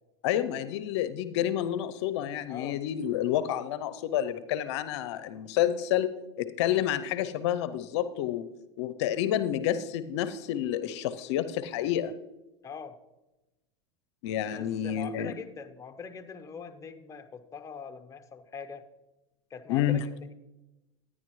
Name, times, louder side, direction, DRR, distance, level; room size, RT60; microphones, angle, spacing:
voice 1, 0.2-8.4 8.8-12.1 14.2-15.3 19.7-20.0, left 11 dB, 70° left, 14 dB, 0.5 m, -29 dB
voice 2, 2.5-2.8 12.6-13.0 14.5-18.8 19.5-20.0, left 6 dB, 20° left, 7 dB, 0.7 m, -42 dB
11.0 x 9.7 x 3.1 m, 1.0 s
supercardioid pair, 105°, 15 cm